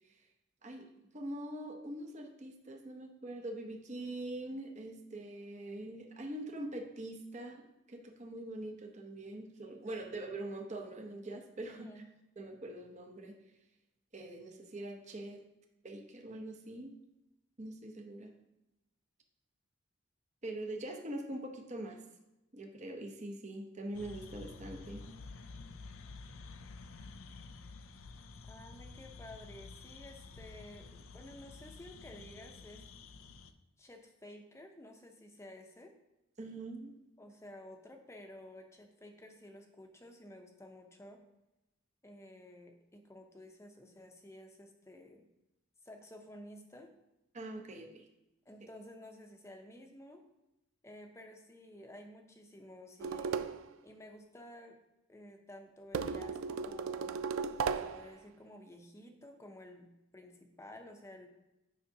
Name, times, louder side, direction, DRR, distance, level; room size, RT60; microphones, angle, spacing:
voice 1, 1.1-11.9 12.4-13.3 14.1-15.4 15.8-16.9 17.6-18.4 20.4-22.0 22.5-25.0 36.4-36.9 47.3-48.1, right 1 dB, 35° right, 3 dB, 0.8 m, -43 dB
voice 2, 11.7-12.1 28.5-32.8 33.8-35.9 37.2-41.2 42.0-45.2 45.8-46.9 48.5-50.2 50.8-53.5 53.8-54.8 55.1-57.2 57.7-61.3, left 1 dB, 15° left, 4 dB, 0.7 m, -53 dB
sound 1, 23.9-33.5, left 4 dB, 85° left, 0.5 m, -50 dB
sound 2, 53.0-53.7 55.9-58.1, right 5 dB, 85° right, 0.4 m, -36 dB
9.5 x 5.6 x 2.8 m, 0.94 s
head